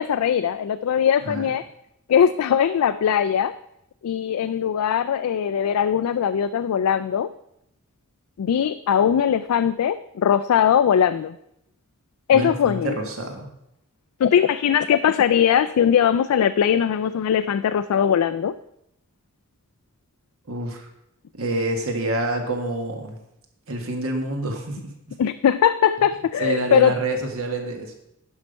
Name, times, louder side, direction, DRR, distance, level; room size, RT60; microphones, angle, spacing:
voice 1, 0.0-1.6 2.1-3.5 4.0-7.3 8.4-11.4 12.3-12.9 14.2-18.6 25.2-26.9, left 8 dB, 80° left, 10 dB, 0.3 m, -20 dB
voice 2, 12.3-13.5 20.5-20.9 21.3-23.2 23.7-24.9 26.4-27.9, right 2 dB, 70° right, 3 dB, 1.6 m, -27 dB
10.5 x 5.6 x 5.3 m, 0.81 s
head